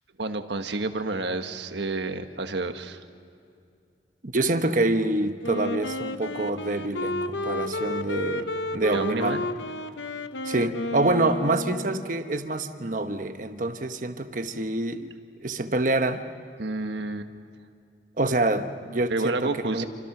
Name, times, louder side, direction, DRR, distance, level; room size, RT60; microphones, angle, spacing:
voice 1, 0.2-3.0 8.9-9.4 16.6-17.3 19.1-19.9, right 2 dB, 75° right, 7 dB, 1.4 m, -29 dB
voice 2, 4.2-9.5 10.4-15.1 15.4-16.2 18.2-19.9, right 2 dB, 45° right, 8 dB, 1.2 m, -26 dB
Wind instrument woodwind instrument, 5.4-12.1, left 1 dB, 80° left, 1.0 m, -32 dB
28.5 x 25.5 x 6.1 m, 2.5 s
head